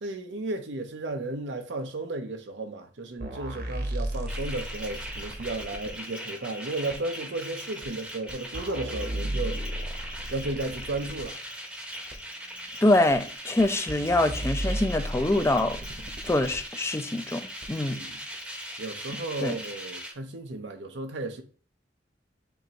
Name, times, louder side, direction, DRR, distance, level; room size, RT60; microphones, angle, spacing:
voice 1, 0.0-9.6 10.3-11.4 17.9-18.2 18.8-21.4, right 2 dB, 80° right, 0.6 m, -34 dB
sound 1, 3.2-5.9 6.9-7.0 7.8-7.9 8.3-11.3 12.1-12.2 13.1-13.2 13.6-13.7 13.9-16.6 17.6-17.7, right 1 dB, 60° right, 1.0 m, -34 dB
sound 2, 4.1-20.1, equal, 5° right, 0.8 m, -40 dB
voice 2, 12.8-15.8 16.2-18.0 19.4-19.6, left 1 dB, 15° left, 0.4 m, -24 dB
6.9 x 2.6 x 2.8 m
head